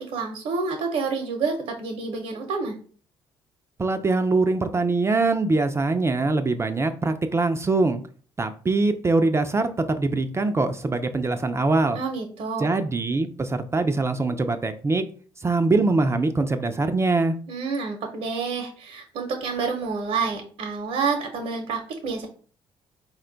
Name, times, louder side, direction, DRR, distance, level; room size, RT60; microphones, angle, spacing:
voice 1, 0.0-2.8 11.9-12.6 17.5-22.3, right 4 dB, 70° right, 2 dB, 0.7 m, -28 dB
voice 2, 3.8-8.0 8.4-12.0 12.6-15.0 15.4-17.4, right 3 dB, 25° right, 7 dB, 0.4 m, -23 dB
4.1 x 2.2 x 3.8 m, 0.43 s
supercardioid pair, 70°, 11 cm